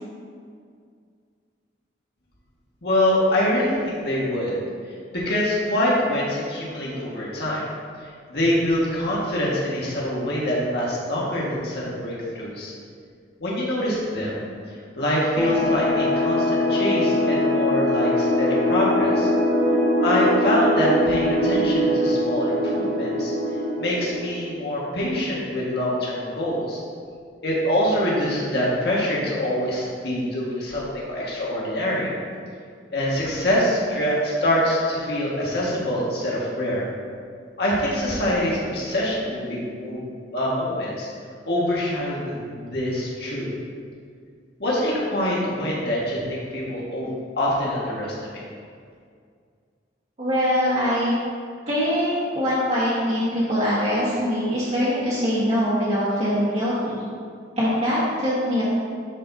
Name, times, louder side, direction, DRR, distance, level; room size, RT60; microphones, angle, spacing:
voice 1, 2.8-4.6 5.1-7.6 8.3-12.7 13.4-14.5 14.9-19.3 20.0-23.3 23.8-26.8 27.4-32.1 32.9-36.9 37.6-40.1 40.3-41.1 41.5-43.5 44.6-47.1 47.4-48.4, left 1 dB, 60° left, -6 dB, 1.7 m, -24 dB
sound 1, 15.4-24.7, left 1 dB, ahead, 1.4 m, -22 dB
voice 2, 50.2-51.1 51.7-57.0 57.6-58.6, equal, 40° right, -10 dB, 1.5 m, -23 dB
11.5 x 4.5 x 2.7 m, 2.2 s
head